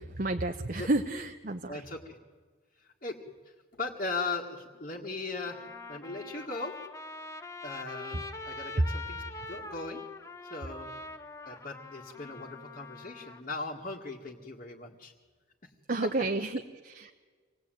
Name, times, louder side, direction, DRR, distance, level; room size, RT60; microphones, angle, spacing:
voice 1, 0.0-1.8 8.1-8.2 8.8-8.9 15.9-17.1, right 2 dB, 45° right, 5 dB, 0.9 m, -30 dB
voice 2, 1.7-2.2 2.8-3.2 3.7-6.8 7.6-10.0 10.5-10.9 11.4-15.1 15.6-15.7 16.0-16.1, left 3 dB, 45° left, -4 dB, 1.9 m, -38 dB
Trumpet, 4.7-4.8 5.5-13.4, left 3 dB, 15° left, 1.2 m, -44 dB
26.0 x 18.5 x 9.1 m, 1.5 s
head